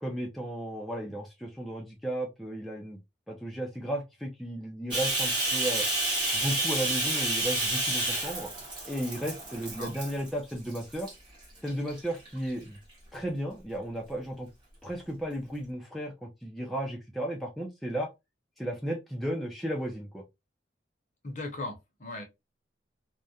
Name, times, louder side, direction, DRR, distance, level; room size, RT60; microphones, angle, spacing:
voice 1, 0.0-3.0 3.3-5.9 6.3-8.5 8.8-11.1 11.6-12.8 13.1-14.5 14.8-18.1 18.6-20.2, right 1 dB, ahead, 0.3 m, -34 dB
Bathtub (filling or washing), 4.9-10.3 10.7-11.1 11.7-12.5, right 2 dB, 25° right, 0.8 m, -30 dB
voice 2, 21.2-22.2, left 2 dB, 40° left, 0.7 m, -37 dB
2.3 x 2.1 x 2.7 m
head